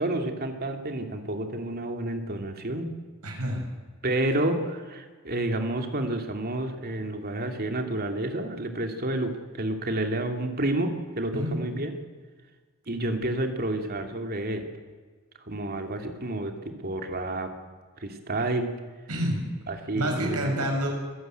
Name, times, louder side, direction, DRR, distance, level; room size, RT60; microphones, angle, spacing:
voice 1, 0.0-2.8 4.0-12.0 12.9-14.7 15.5-17.5 18.0-18.7 19.7-20.7, right 1 dB, 45° right, 5 dB, 2.7 m, -30 dB
voice 2, 3.2-3.6 11.3-11.6 19.1-19.5 19.9-20.9, equal, 85° right, 2 dB, 6.9 m, -28 dB
26.0 x 15.5 x 9.2 m, 1.5 s
head